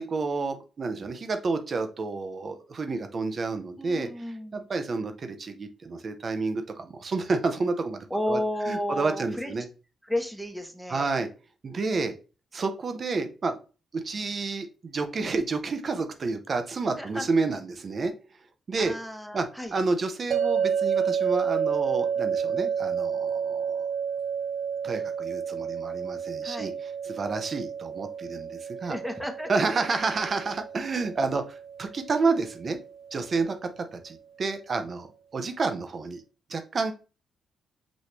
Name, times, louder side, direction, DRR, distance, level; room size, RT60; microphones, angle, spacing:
voice 1, 0.0-4.1 4.5-8.4 8.7-9.6 10.9-11.3 11.6-12.2 12.5-13.6 13.9-18.1 18.7-18.9 19.3-19.5 19.7-23.9 24.8-26.7 27.0-29.0 29.5-31.4 31.8-32.8 33.1-36.2 36.5-36.9, right 4 dB, 50° right, 7 dB, 0.8 m, -29 dB
voice 2, 3.8-4.6 8.1-9.5 10.0-11.2 17.0-17.3 18.8-19.7 26.4-26.7 28.8-29.8, left 1 dB, ahead, 4 dB, 1.1 m, -32 dB
sound 1, 20.3-33.4, right 7 dB, 70° right, 0.4 m, -30 dB
6.2 x 2.6 x 3.2 m, 0.33 s
supercardioid pair, 55°, 0 cm